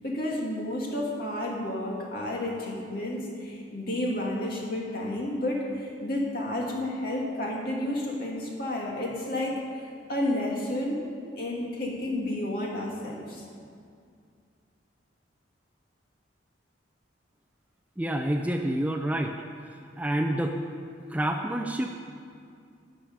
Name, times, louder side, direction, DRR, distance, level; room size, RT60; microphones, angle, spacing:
voice 1, 0.0-9.6 10.1-11.0 11.4-13.4, left 1 dB, 50° left, -2 dB, 2.3 m, -31 dB
voice 2, 18.0-19.3 20.0-20.6 21.1-22.0, right 1 dB, 10° right, 3 dB, 0.5 m, -28 dB
12.0 x 7.0 x 9.2 m, 2.3 s
head